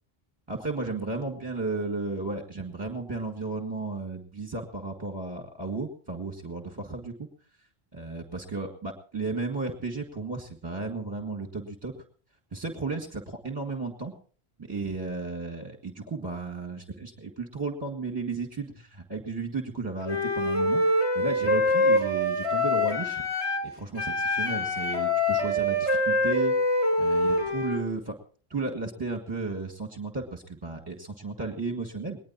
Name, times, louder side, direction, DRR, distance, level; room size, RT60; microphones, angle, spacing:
voice 1, 0.5-7.3 7.9-11.9 12.5-14.1 14.6-20.8 21.1-23.2 23.7-26.5 27.0-28.1 28.5-32.2, right 3 dB, 20° right, 2 dB, 2.0 m, -34 dB
Wind instrument woodwind instrument, 20.0-23.7 23.9-27.8, left 1 dB, 25° left, 3.7 m, -25 dB
20.5 x 20.0 x 2.9 m, 0.43 s
omnidirectional pair, 1.1 m